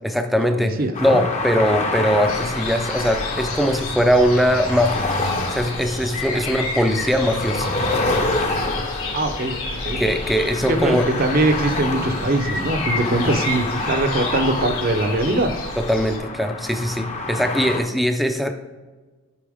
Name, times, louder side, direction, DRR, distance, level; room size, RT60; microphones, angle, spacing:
voice 1, 0.0-5.1 5.5-7.7 10.0-11.1 15.8-18.5, equal, ahead, 6 dB, 0.5 m, -21 dB
voice 2, 0.5-1.2 6.3-6.4 9.1-10.0 10.7-15.5, right 2 dB, 40° right, 7 dB, 0.7 m, -22 dB
sound 1, 0.9-17.8, left 2 dB, 30° left, 0.8 m, -27 dB
sound 2, 2.3-16.2, left 2 dB, 80° left, 2.4 m, -32 dB
8.4 x 5.6 x 3.5 m, 1.3 s
head